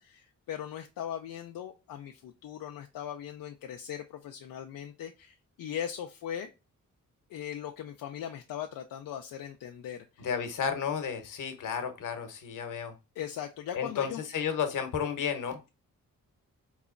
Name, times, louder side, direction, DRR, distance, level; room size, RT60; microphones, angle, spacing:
voice 1, 0.0-6.5 7.3-10.3 13.2-14.2, left 9 dB, 80° left, 4 dB, 0.5 m, -39 dB
voice 2, 10.2-12.9 13.7-15.6, left 7 dB, 65° left, 7 dB, 0.9 m, -32 dB
4.0 x 3.0 x 2.4 m, 0.27 s
cardioid pair, 95°, 34 cm